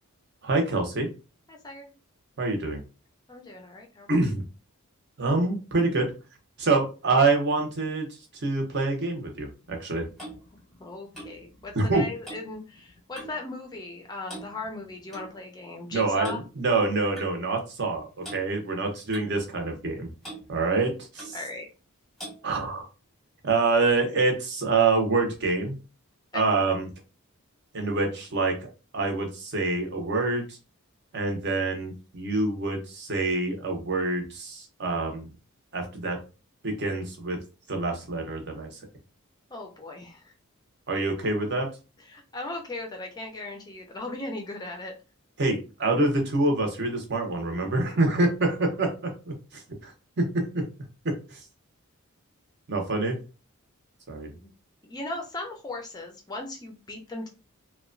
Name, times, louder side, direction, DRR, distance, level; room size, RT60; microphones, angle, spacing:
voice 1, 0.4-1.1 2.4-2.8 4.1-4.4 5.2-6.1 6.6-8.1 8.4-10.1 11.7-12.0 15.9-20.1 20.5-21.4 22.4-22.8 23.4-25.8 26.3-26.9 27.7-28.6 28.9-30.4 31.1-35.3 35.7-36.2 36.6-37.4 37.7-38.7 40.9-41.7 45.4-49.3 49.8-50.6 51.0-51.4 52.7-53.2 54.1-54.3, right 3 dB, 50° right, 3 dB, 0.7 m, -26 dB
voice 2, 1.5-1.9 3.3-4.4 10.8-16.4 21.3-21.7 26.3-26.5 39.5-40.3 42.0-44.9 54.3-54.5 54.8-57.3, left 2 dB, 20° left, 2 dB, 0.4 m, -38 dB
Clock, 9.6-13.5 13.7-14.0 14.3-15.3 16.2-16.4 17.2-17.3 18.2-18.4 19.1-19.9 20.2-20.5 21.2-21.4 22.2-22.4, right 1 dB, ahead, 0.8 m, -43 dB
2.8 x 2.1 x 2.5 m, 0.32 s
head